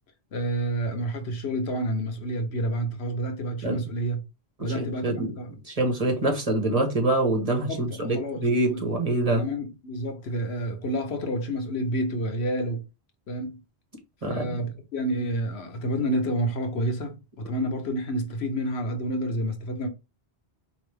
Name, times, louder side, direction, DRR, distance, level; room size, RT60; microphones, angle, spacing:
voice 1, 0.3-4.2 4.6-5.6 7.7-8.8 9.2-12.8 13.3-13.6 14.3-19.9, right 1 dB, 75° left, 1.2 m, -29 dB
voice 2, 4.6-5.3 5.7-9.4 14.2-14.6, right 2 dB, 35° right, 1.2 m, -25 dB
4.3 x 3.1 x 3.3 m
omnidirectional pair, 1.1 m